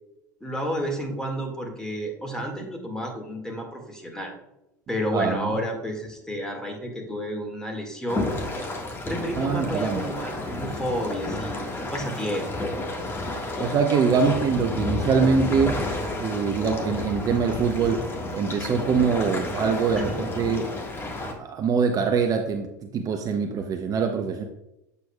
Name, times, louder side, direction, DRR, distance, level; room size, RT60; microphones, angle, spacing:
voice 1, 0.4-4.4 4.9-8.3 9.1-12.7 14.3-14.4 20.0-20.2, equal, 5° left, 1 dB, 1.9 m, -31 dB
voice 2, 5.1-5.5 9.4-10.1 13.6-15.8 16.2-18.0 18.3-20.7 21.4-24.4, right 5 dB, 35° right, 5 dB, 0.7 m, -24 dB
sound 1, 8.1-21.3, left 2 dB, 25° left, 1.6 m, -31 dB
7.7 x 6.8 x 2.3 m, 0.86 s
hypercardioid pair, 80°, 10 cm